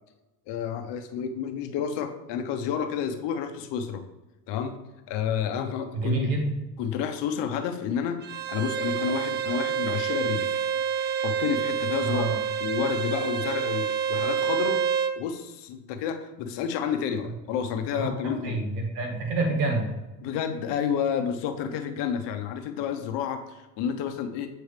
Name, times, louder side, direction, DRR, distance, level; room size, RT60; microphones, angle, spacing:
voice 1, 0.5-4.0 4.5-4.7 5.1-6.3 6.8-10.5 11.0-12.3 12.6-14.8 15.2-18.6 20.2-24.5, left 7 dB, 60° left, 8 dB, 0.9 m, -30 dB
voice 2, 5.9-6.5 12.0-12.4 17.2-17.3 17.9-19.8, right 2 dB, 85° right, 1 dB, 1.7 m, -28 dB
Bowed string instrument, 8.2-15.2, right 7 dB, 25° right, 0.4 m, -28 dB
8.0 x 4.6 x 3.3 m, 1.0 s
hypercardioid pair, 85°, 47 cm